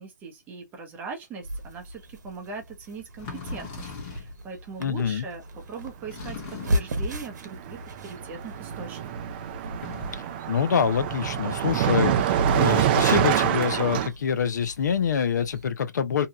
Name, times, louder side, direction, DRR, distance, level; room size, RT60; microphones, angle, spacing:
voice 1, 0.0-9.4, right 4 dB, 15° right, 0.8 m, -40 dB
sound 1, 1.4-15.7, equal, 75° right, 0.9 m, -36 dB
sound 2, 3.1-4.4 6.1-7.0 9.7-10.3, left 5 dB, 30° left, 1.2 m, -39 dB
voice 2, 4.8-5.2 10.1-16.3, left 7 dB, 70° left, 0.6 m, -26 dB
Car passing by, 6.6-6.8 7.1-14.1, right 11 dB, 35° right, 0.4 m, -26 dB
2.8 x 2.2 x 2.7 m
hypercardioid pair, 145°, 10 cm